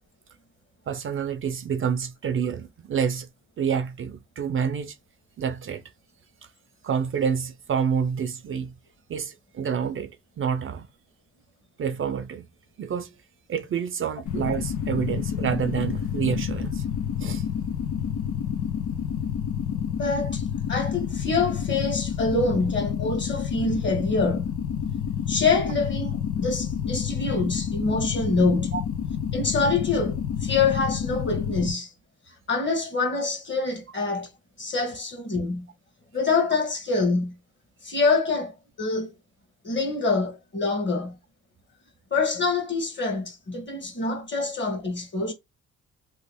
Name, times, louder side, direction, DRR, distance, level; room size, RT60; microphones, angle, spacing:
voice 1, 0.9-3.3 3.6-5.0 5.4-5.8 6.8-8.7 9.1-10.1 10.4-10.9 11.8-12.5 12.8-13.1 13.5-16.8 17.2-17.5 28.7-28.8, right 7 dB, 45° right, 0.5 m, -28 dB
sound 1, 14.3-31.7, left 8 dB, 85° left, 0.8 m, -29 dB
voice 2, 20.0-20.4 20.7-24.5 25.3-28.7 29.3-31.9 32.5-34.3 34.6-35.7 36.1-37.3 37.8-38.5 38.8-39.1 39.6-41.1 42.1-45.3, left 3 dB, 40° left, 1.4 m, -25 dB
3.1 x 2.4 x 3.3 m
cardioid pair, 90°, 30 cm